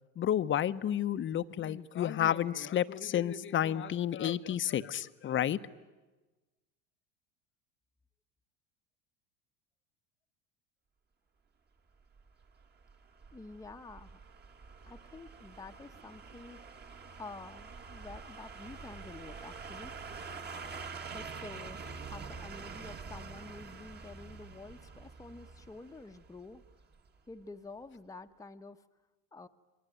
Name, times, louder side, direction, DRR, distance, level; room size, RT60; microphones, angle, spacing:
voice 1, 0.2-5.6, left 10 dB, 35° left, 13 dB, 0.9 m, -31 dB
sound 1, 12.2-27.1 27.4-27.5, right 4 dB, 30° right, 1.8 m, -46 dB
voice 2, 13.3-14.2 14.9-16.8 17.2-19.9 21.1-26.6 27.3-28.8 29.3-29.5, left 3 dB, 10° left, 6 dB, 1.0 m, -49 dB
28.5 x 22.5 x 9.3 m, 1.2 s
supercardioid pair, 105°, 35 cm